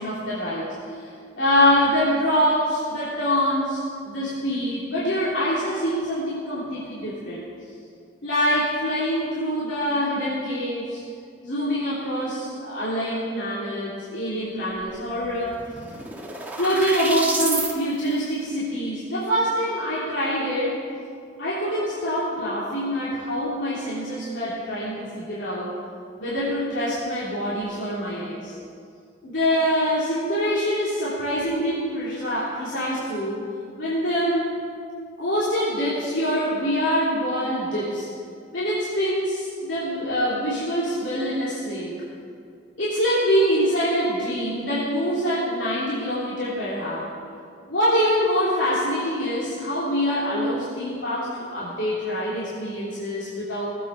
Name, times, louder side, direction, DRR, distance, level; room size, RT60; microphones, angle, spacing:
voice 1, 0.0-7.4 8.2-11.0 11.4-15.5 16.5-20.8 21.4-25.7 26.2-28.5 29.2-33.4 33.8-34.6 35.2-38.1 38.5-41.9 42.8-47.1 47.7-53.7, equal, 85° left, -10 dB, 3.2 m, -25 dB
sound 1, 14.9-15.0 15.2-17.7, right 2 dB, 10° right, 1.3 m, -29 dB
19.0 x 8.5 x 5.6 m, 2.3 s
head